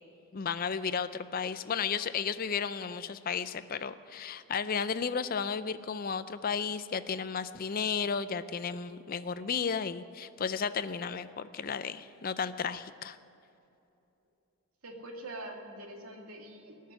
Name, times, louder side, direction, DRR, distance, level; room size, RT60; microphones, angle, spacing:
voice 1, 0.3-13.2, left 6 dB, 40° left, 13 dB, 0.4 m, -33 dB
voice 2, 14.8-16.9, right 1 dB, 85° right, 1 dB, 2.3 m, -44 dB
18.5 x 6.6 x 10.0 m, 2.7 s
head